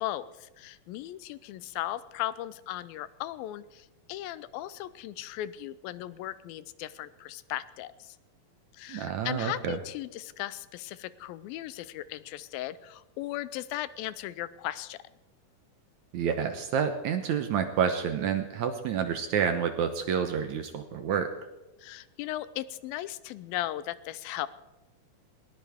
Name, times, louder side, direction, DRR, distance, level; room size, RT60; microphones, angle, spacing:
voice 1, 0.0-8.2 8.7-15.0 21.8-24.5, left 14 dB, 85° left, 16 dB, 2.4 m, -37 dB
voice 2, 8.9-9.8 16.1-21.3, right 7 dB, 70° right, 7 dB, 1.9 m, -29 dB
20.5 x 18.5 x 3.6 m, 1.0 s
omnidirectional pair, 4.2 m